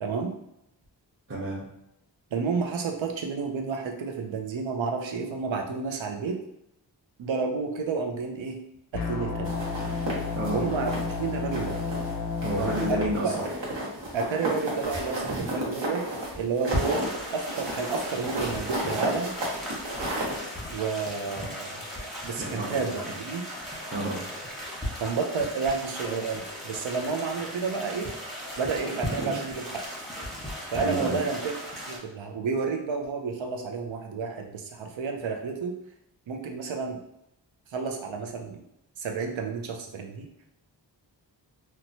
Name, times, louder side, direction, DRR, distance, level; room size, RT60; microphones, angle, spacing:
voice 1, 0.0-0.3 2.3-6.4 7.2-8.6 8.9-9.5 10.5-11.8 12.6-12.8 13.2-13.5 14.1-16.1 16.3-17.0 17.3-19.3 20.7-21.8 22.2-23.4 25.0-28.1 28.6-29.8 30.7-31.6 31.9-35.7 36.3-37.0 37.7-38.6 39.0-40.3, right 5 dB, 90° right, 3 dB, 0.5 m, -30 dB
voice 2, 1.3-1.6 10.3-10.6 12.4-13.3 15.3-15.5 22.4-22.9 23.9-24.2 29.1-29.3 30.7-31.2, right 1 dB, 25° right, -6 dB, 0.7 m, -30 dB
sound 1, 8.9-13.1, left 4 dB, 50° left, 0.5 m, -31 dB
sound 2, 9.4-11.2 11.5-12.1 12.4-20.4, right 1 dB, 70° right, 1.0 m, -33 dB
sound 3, 16.7-32.0, equal, ahead, 0.9 m, -37 dB
2.9 x 2.2 x 2.6 m, 0.81 s
wide cardioid pair, 60°, 45 cm